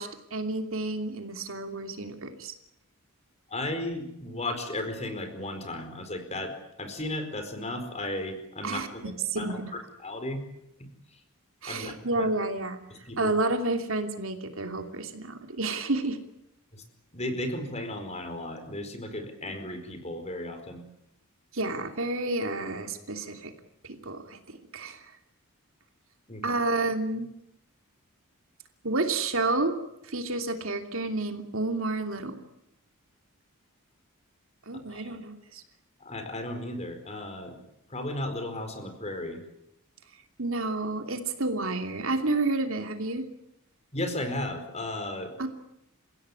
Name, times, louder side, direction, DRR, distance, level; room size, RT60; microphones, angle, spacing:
voice 1, 0.0-2.5 8.6-9.7 11.6-12.8 13.2-16.2 21.5-23.5 23.8-25.0 26.4-27.3 28.8-29.7 30.0-32.4 34.7-35.6 40.4-43.2 45.4-45.5, right 2 dB, 65° right, 6 dB, 2.9 m, -30 dB
voice 2, 3.5-9.0 9.4-10.4 11.7-12.3 12.9-13.3 16.7-16.8 17.1-20.8 26.3-26.4 34.9-35.2 36.0-37.6 37.9-39.4 43.9-45.3, left 1 dB, 30° left, 7 dB, 4.6 m, -35 dB
30.0 x 16.5 x 9.8 m, 0.81 s
head